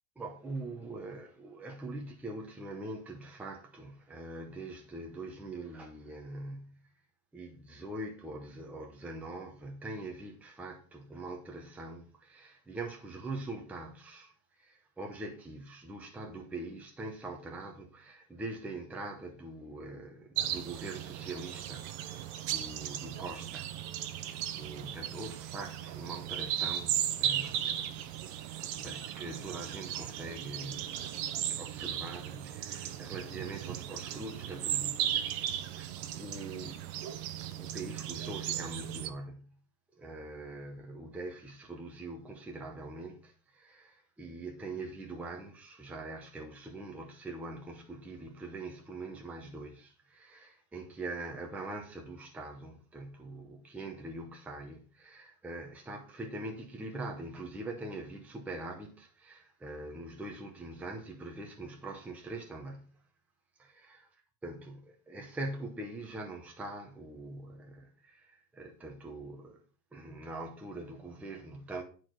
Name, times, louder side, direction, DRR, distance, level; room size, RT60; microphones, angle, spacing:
voice 1, 0.2-6.8 7.3-14.3 14.6-23.8 24.2-31.2 31.5-39.6 39.9-63.0 63.6-64.0 64.4-69.6 69.9-71.8, right 2 dB, 5° right, 0.7 m, -43 dB
sound 1, 20.4-39.1, right 11 dB, 40° right, 0.7 m, -36 dB
10.0 x 4.5 x 4.5 m
supercardioid pair, 155°, 45 cm